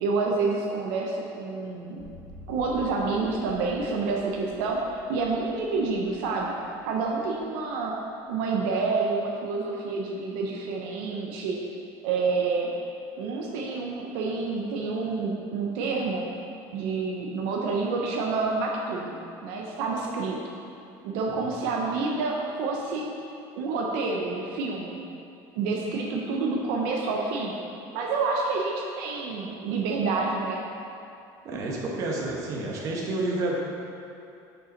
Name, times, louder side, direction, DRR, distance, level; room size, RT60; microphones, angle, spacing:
voice 1, 0.0-2.0 2.5-6.5 6.8-8.0 8.3-11.6 12.0-12.7 13.2-16.3 16.7-19.2 19.4-20.4 21.0-23.1 23.6-25.0 25.5-27.5 27.9-30.6, right 4 dB, 70° right, -1 dB, 0.8 m, -28 dB
sound 1, 2.0-8.0, left 3 dB, 55° left, 1.8 m, -49 dB
voice 2, 31.4-33.6, right 2 dB, 35° right, -3 dB, 1.0 m, -30 dB
6.6 x 5.4 x 4.5 m, 2.6 s
cardioid pair, 180°, 9 cm